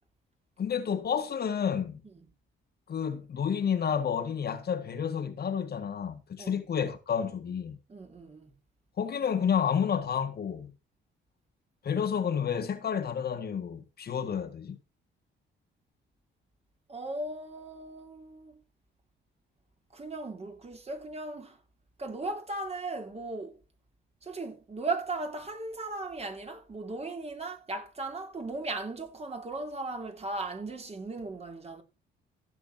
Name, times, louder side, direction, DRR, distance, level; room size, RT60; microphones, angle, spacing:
voice 1, 0.6-2.0 2.9-7.8 9.0-10.7 11.8-14.8, left 7 dB, 55° left, 1.7 m, -30 dB
voice 2, 7.9-8.5 16.9-18.6 19.9-21.6 22.0-23.6 24.2-31.8, right 2 dB, 30° right, 3.2 m, -37 dB
15.0 x 7.3 x 4.3 m
cardioid pair, 90°, 20 cm